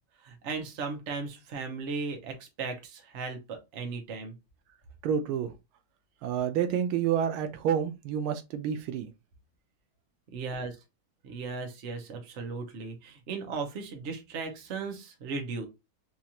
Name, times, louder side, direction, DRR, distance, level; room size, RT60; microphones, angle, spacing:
voice 1, 0.2-4.3 10.3-10.8 11.2-15.7, right 4 dB, 50° right, 0.8 m, -36 dB
voice 2, 5.0-5.5 6.2-9.1, right 8 dB, 85° right, 1.5 m, -29 dB
4.4 x 2.4 x 2.8 m
omnidirectional pair, 2.3 m